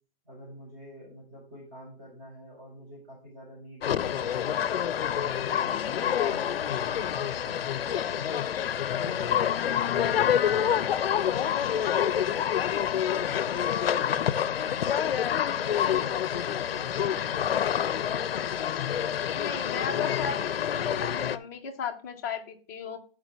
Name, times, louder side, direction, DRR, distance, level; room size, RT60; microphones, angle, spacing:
voice 1, 0.2-4.7 5.2-8.6 8.9-12.4 12.8-18.8, equal, 20° right, -8 dB, 4.4 m, -47 dB
sound 1, 3.8-21.4, left 9 dB, 75° left, 0.6 m, -27 dB
voice 2, 19.3-23.0, left 6 dB, 20° left, 0 dB, 0.8 m, -35 dB
11.5 x 4.8 x 3.4 m, 0.40 s
hypercardioid pair, 175°, 30 cm